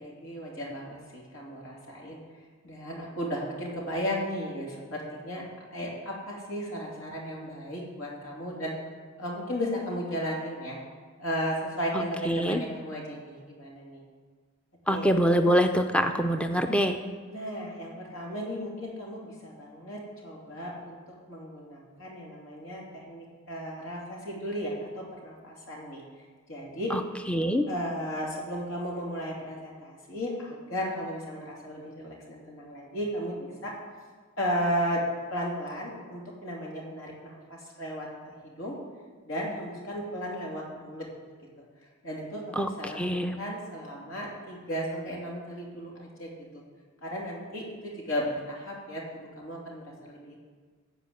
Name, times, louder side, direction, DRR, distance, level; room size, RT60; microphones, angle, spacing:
voice 1, 0.0-2.2 2.6-5.5 5.7-8.7 9.2-10.8 11.2-14.0 14.9-15.1 17.3-21.0 21.3-26.0 26.5-26.9 27.7-33.7 34.4-35.0 35.3-38.7 39.2-41.1 42.0-43.0 43.4-46.6 47.0-50.4, equal, 85° left, -3 dB, 3.0 m, -35 dB
voice 2, 11.9-12.6 14.9-17.0 26.9-27.0 27.3-27.7 42.6-43.4, equal, 5° left, 6 dB, 0.4 m, -25 dB
14.5 x 5.0 x 8.0 m, 1.5 s
head